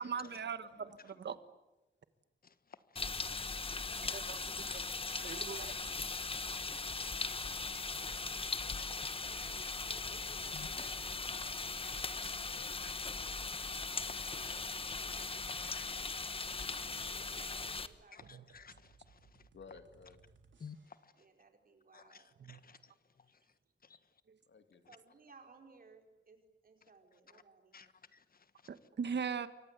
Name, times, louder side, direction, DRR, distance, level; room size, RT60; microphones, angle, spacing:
voice 1, 0.0-1.3 4.1-4.4 4.7-4.8 5.2-5.7 18.3-18.4 22.4-22.6 28.7-29.5, right 6 dB, 70° right, 1.5 m, -39 dB
voice 2, 0.6-1.4 12.5-12.7 14.3-14.6 19.5-20.2 24.5-24.9, left 5 dB, 75° left, 2.4 m, -57 dB
voice 3, 2.4-3.7 4.6-4.8 5.1-5.3 5.6-5.8 7.2-7.4 7.7-7.8 8.4-8.5 8.8-9.3 10.5-10.7 12.8-12.9 13.9-14.5 15.1-15.2 15.6-16.6 18.1-19.5 20.6-21.2 21.9-23.5 23.8-24.2 27.3-27.4 27.7-28.7, left 6 dB, 50° left, 1.5 m, -56 dB
sound 1, 3.0-17.9, left 4 dB, 30° left, 1.1 m, -39 dB
voice 4, 3.8-5.8 6.3-8.9 9.2-11.9 14.4-15.7 16.4-18.5 21.2-22.3 23.2-23.5 23.9-24.0 24.9-27.8, right 4 dB, 50° right, 4.9 m, -62 dB
sound 2, 10.5-10.7 11.0-11.4 11.8-12.0 12.4-12.8 13.1-13.3 13.7-14.1 14.5-14.6 15.1-15.5 15.8-21.1, right 5 dB, 85° right, 3.7 m, -65 dB
29.0 x 24.0 x 8.2 m
wide cardioid pair, 170°, 19 cm